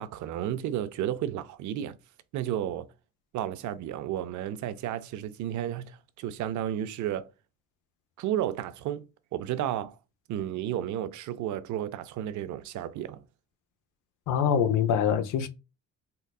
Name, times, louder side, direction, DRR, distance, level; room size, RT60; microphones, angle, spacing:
voice 1, 0.0-2.0 2.3-2.9 3.3-7.3 8.2-10.0 10.3-13.2, right 11 dB, 75° right, 0.5 m, -32 dB
voice 2, 14.3-15.5, left 8 dB, 85° left, 0.6 m, -24 dB
3.8 x 2.2 x 2.2 m
cardioid pair, 90°, 30 cm